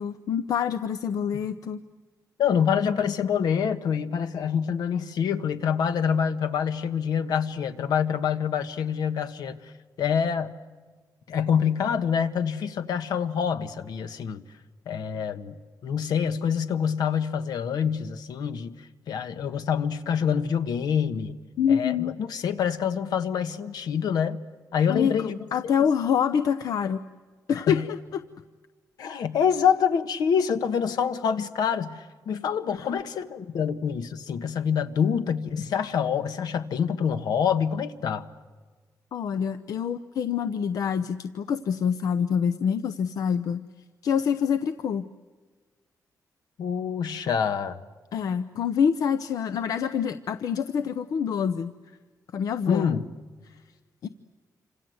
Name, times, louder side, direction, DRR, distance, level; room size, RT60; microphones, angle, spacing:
voice 1, 0.0-1.8 21.6-22.1 24.9-27.0 27.5-28.0 32.7-32.9 39.1-43.6 44.0-45.0 48.1-51.7 52.3-52.9 54.0-54.1, left 7 dB, 60° left, 11 dB, 0.8 m, -26 dB
voice 2, 2.4-9.7 10.0-10.6 11.3-14.4 14.8-15.6 15.8-18.7 19.1-21.4 21.7-24.4 24.7-25.4 25.6-25.7 27.7-27.9 29.0-38.3 46.6-47.8 52.7-53.1, left 7 dB, 80° left, 9 dB, 1.5 m, -26 dB
28.0 x 26.5 x 7.9 m, 1.4 s
wide cardioid pair, 175°, 7 cm